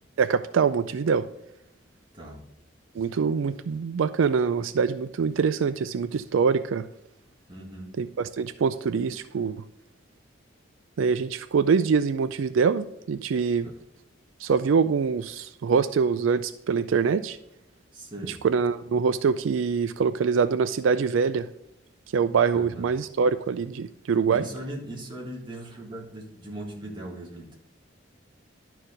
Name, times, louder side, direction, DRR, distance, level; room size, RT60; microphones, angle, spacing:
voice 1, 0.2-1.3 3.0-6.9 8.0-9.6 11.0-13.7 14.4-17.4 18.4-21.5 22.1-24.4, right 5 dB, 80° right, 12 dB, 0.4 m, -24 dB
voice 2, 2.1-2.5 7.5-7.9 13.6-13.8 17.9-18.5 22.5-22.9 24.3-27.6, right 1 dB, 25° right, -2 dB, 1.8 m, -39 dB
11.0 x 4.6 x 5.1 m, 0.79 s
head